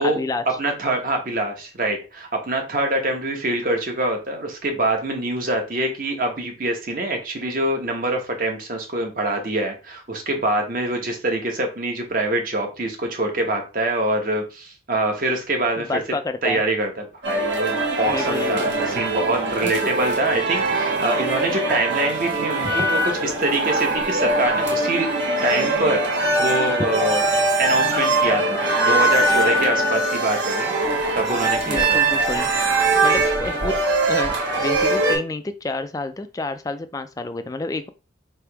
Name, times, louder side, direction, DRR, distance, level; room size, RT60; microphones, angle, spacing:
voice 1, 0.0-0.4 15.8-16.6 18.1-18.7 19.6-19.9 20.7-20.8 22.6-22.9 31.7-32.5 33.0-33.8 34.1-37.9, left 2 dB, 20° left, 9 dB, 0.3 m, -29 dB
voice 2, 0.6-16.0 16.4-16.9 17.2-25.1 25.4-26.0 26.4-27.2 27.6-30.7 31.1-32.0, right 2 dB, 45° right, 3 dB, 1.0 m, -24 dB
sound 1, 17.2-35.2, right 2 dB, 70° right, 1.6 m, -22 dB
3.4 x 2.9 x 4.6 m, 0.32 s
head